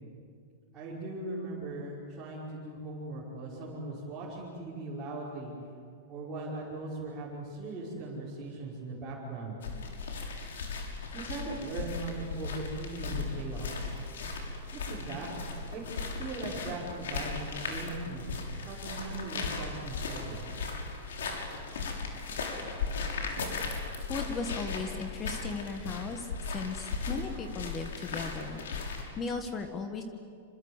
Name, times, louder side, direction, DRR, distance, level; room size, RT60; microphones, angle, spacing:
voice 1, 0.7-5.5 6.1-9.6 11.1-13.9 14.7-15.3 15.6-15.8 16.2-18.2 18.6-20.4, right 2 dB, 15° right, -9 dB, 5.3 m, -39 dB
sound 1, 9.6-29.0, left 4 dB, 85° left, 6.5 m, -37 dB
voice 2, 24.1-28.6 29.2-30.0, left 4 dB, 15° left, 6 dB, 1.4 m, -37 dB
28.0 x 26.5 x 8.1 m, 2.4 s
supercardioid pair, 175°, 0 cm